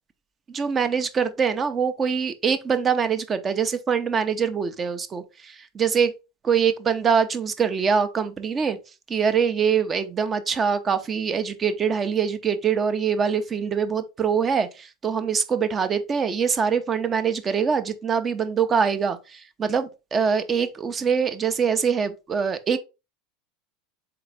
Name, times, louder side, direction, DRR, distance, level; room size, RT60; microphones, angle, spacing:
voice 1, 0.5-6.1 6.5-8.8 9.1-22.8, right 6 dB, 25° right, 0.6 m, -24 dB
3.8 x 3.4 x 3.2 m
supercardioid pair, 110°, 0 cm